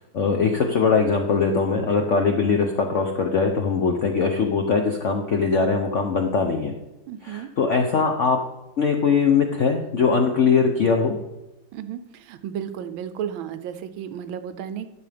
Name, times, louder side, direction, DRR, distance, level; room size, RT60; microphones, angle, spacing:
voice 1, 0.1-6.7 7.2-8.4 8.8-11.2, left 5 dB, 65° left, 4 dB, 0.7 m, -21 dB
voice 2, 7.1-7.5 11.7-14.9, right 9 dB, 80° right, 11 dB, 1.4 m, -33 dB
11.0 x 6.9 x 3.4 m, 0.99 s
omnidirectional pair, 2.2 m